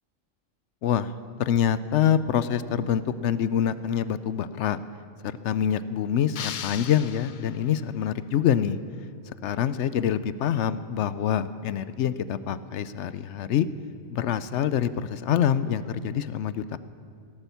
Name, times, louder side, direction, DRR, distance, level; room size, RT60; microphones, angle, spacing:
voice 1, 0.8-1.1 1.4-4.8 5.2-8.8 9.3-13.7 14.1-16.8, left 9 dB, 65° left, 15 dB, 0.8 m, -26 dB
sound 1, 6.4-7.9, left 9 dB, 85° left, 0.4 m, -37 dB
17.0 x 11.5 x 6.9 m, 2.3 s
omnidirectional pair, 1.4 m